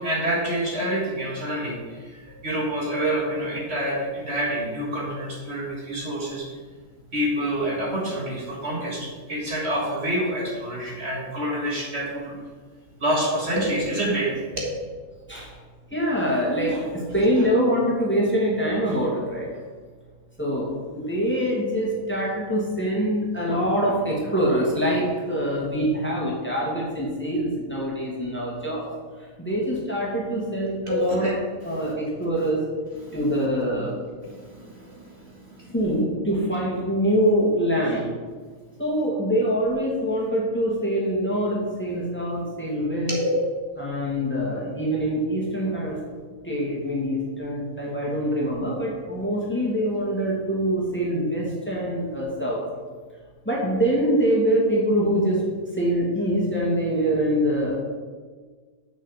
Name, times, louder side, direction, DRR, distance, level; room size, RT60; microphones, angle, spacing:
voice 1, 0.0-6.5 7.1-12.3 13.0-14.8 17.4-17.5 30.9-31.3 33.0-33.1 34.2-35.7 43.1-43.4, right 1 dB, 50° right, -3 dB, 1.9 m, -27 dB
voice 2, 15.9-19.5 20.4-28.9 29.4-31.3 31.6-32.6 33.1-33.9 35.7-38.0 38.8-43.1 43.8-46.0 46.4-52.6 53.4-55.4 55.7-57.8, equal, 10° left, -4 dB, 2.3 m, -24 dB
7.3 x 6.3 x 7.1 m, 1.5 s
omnidirectional pair, 1.5 m